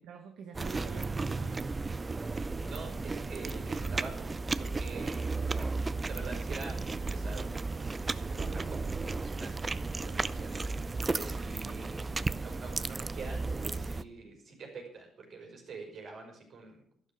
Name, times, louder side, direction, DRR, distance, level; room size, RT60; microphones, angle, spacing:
voice 1, 0.0-1.8 8.4-8.9, right 6 dB, 80° right, 5 dB, 1.3 m, -48 dB
sound 1, 0.5-14.0, right 3 dB, 25° right, 0.5 m, -34 dB
voice 2, 1.9-5.2 5.7-10.7 11.1-12.1 12.4-16.8, right 4 dB, 60° right, 2 dB, 5.3 m, -46 dB
12.0 x 11.0 x 6.1 m, 0.65 s
cardioid pair, 90°, 0 cm